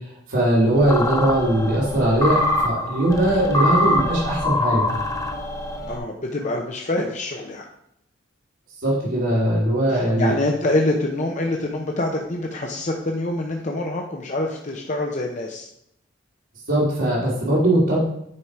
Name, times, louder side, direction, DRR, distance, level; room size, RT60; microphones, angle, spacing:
voice 1, 0.3-4.9 8.8-10.3 16.7-18.0, right 1 dB, 80° right, -8 dB, 2.6 m, -20 dB
sound 1, 0.7-6.0, left 1 dB, 15° left, 0.9 m, -24 dB
voice 2, 5.9-7.6 9.9-15.7, left 2 dB, 40° left, 1 dB, 0.7 m, -25 dB
9.8 x 4.2 x 4.8 m, 0.75 s
head